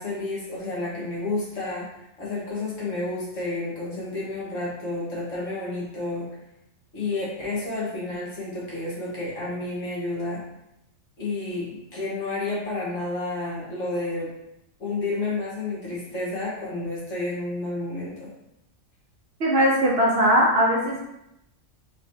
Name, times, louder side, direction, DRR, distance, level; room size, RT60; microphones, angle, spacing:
voice 1, 0.0-1.9 2.2-6.3 6.9-10.4 11.2-14.3 14.8-18.3, left 2 dB, 70° left, -6 dB, 1.7 m, -30 dB
voice 2, 19.4-21.0, equal, 55° right, -3 dB, 0.8 m, -20 dB
4.0 x 3.1 x 2.7 m, 0.84 s
omnidirectional pair, 1.4 m